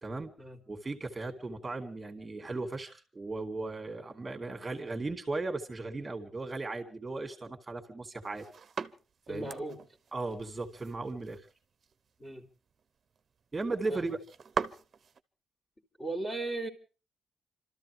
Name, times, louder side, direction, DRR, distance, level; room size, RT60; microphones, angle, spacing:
voice 1, 0.7-8.4 9.3-9.5 10.1-11.4 13.5-14.2, right 3 dB, 15° right, 4 dB, 2.6 m, -36 dB
sound 1, 8.2-15.2, right 6 dB, 35° right, 0.9 m, -42 dB
voice 2, 9.3-9.8 12.2-12.5 13.9-14.2 16.0-16.7, right 2 dB, 20° left, -3 dB, 2.9 m, -37 dB
29.5 x 13.5 x 3.4 m, 0.35 s
cardioid pair, 145°, 0 cm